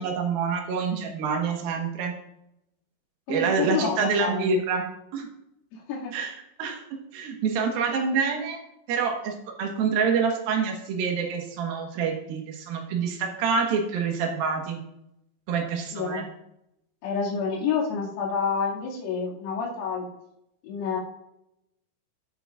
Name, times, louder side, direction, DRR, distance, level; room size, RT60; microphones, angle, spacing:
voice 1, 0.0-2.1 3.3-4.9 5.1-5.3 6.1-6.3 6.6-6.8 7.1-8.6 8.9-9.3 9.6-14.8 15.5-16.3, right 5 dB, 70° right, 2 dB, 2.3 m, -26 dB
voice 2, 3.3-4.5 5.7-6.1 15.9-16.3 17.0-20.1 20.6-21.0, left 5 dB, 85° left, -5 dB, 5.0 m, -28 dB
16.0 x 7.8 x 2.5 m, 0.81 s
omnidirectional pair, 5.9 m